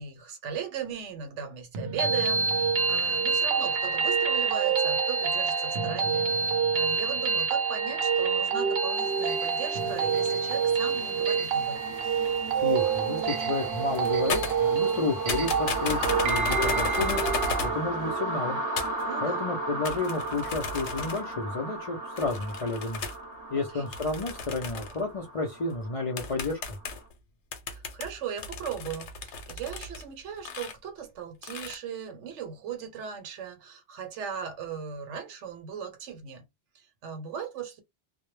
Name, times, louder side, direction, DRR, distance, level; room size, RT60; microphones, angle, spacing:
voice 1, 0.0-11.9 15.9-16.4 19.0-19.4 23.7-23.9 27.7-36.4 36.7-37.8, right 7 dB, 85° right, 1.0 m, -38 dB
sound 1, 1.7-17.7, right 6 dB, 65° right, 0.7 m, -27 dB
sound 2, 9.1-26.9, right 2 dB, 20° right, 0.7 m, -35 dB
voice 2, 12.6-17.2 17.6-18.6 19.2-23.0 23.5-26.8, left 3 dB, 60° left, 0.3 m, -31 dB
sound 3, 13.6-13.7 13.9-15.0 15.3-17.8 18.8-19.0 19.8-21.3 22.2-23.2 23.9-25.0 25.7-25.8 26.2-27.1 27.5-30.0 30.4-30.7 31.4-31.8, left 4 dB, 80° left, 0.9 m, -35 dB
2.1 x 2.0 x 3.1 m
omnidirectional pair, 1.2 m